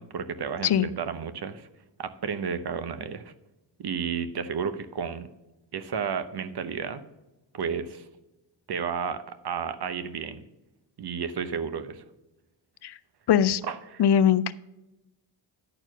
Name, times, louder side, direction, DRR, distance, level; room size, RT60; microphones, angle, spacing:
voice 1, 0.0-1.7 2.0-3.3 3.8-5.3 5.7-7.0 7.5-8.0 8.7-10.4 11.0-12.0 13.7-14.0, right 6 dB, 55° right, 12 dB, 0.9 m, -32 dB
voice 2, 13.3-13.6 14.0-14.5, left 9 dB, 60° left, 15 dB, 0.5 m, -21 dB
11.0 x 4.4 x 6.0 m, 0.97 s
cardioid pair, 65°, 46 cm